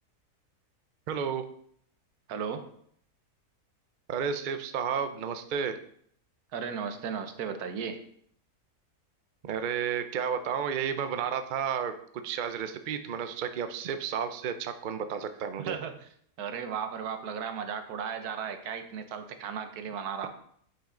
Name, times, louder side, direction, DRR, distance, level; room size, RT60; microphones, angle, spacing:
voice 1, 1.1-1.4 4.1-5.8 9.4-11.9 12.2-15.8, right 7 dB, 90° right, 9 dB, 0.4 m, -32 dB
voice 2, 2.3-2.7 6.5-8.0 15.6-16.1 16.4-20.3, right 7 dB, 75° right, 8 dB, 1.3 m, -35 dB
8.7 x 5.6 x 3.8 m, 0.65 s
omnidirectional pair, 1.7 m